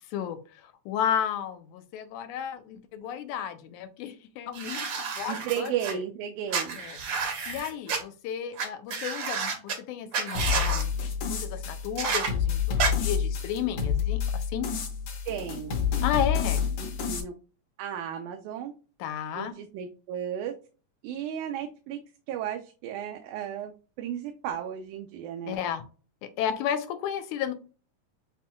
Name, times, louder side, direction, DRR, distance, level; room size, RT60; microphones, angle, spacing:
voice 1, 0.1-6.0 6.8-7.0 7.5-14.7 16.0-16.7 19.0-19.6 25.5-25.8 26.2-27.5, left 9 dB, 85° left, 9 dB, 2.2 m, -33 dB
sound 1, 4.5-5.9 6.5-8.0 8.6-8.7 8.9-9.8 10.1-10.8 12.0-12.3 12.8-12.9, right 5 dB, 60° right, 1.2 m, -30 dB
voice 2, 5.3-6.8 15.3-15.8 17.0-17.3 17.8-18.7 19.4-20.5 21.0-22.0 22.3-23.7 24.0-25.6, right 9 dB, 85° right, 4 dB, 2.1 m, -34 dB
sound 2, 10.4-17.2, left 7 dB, 60° left, 1.9 m, -29 dB
7.3 x 2.8 x 2.3 m, 0.36 s
omnidirectional pair, 3.4 m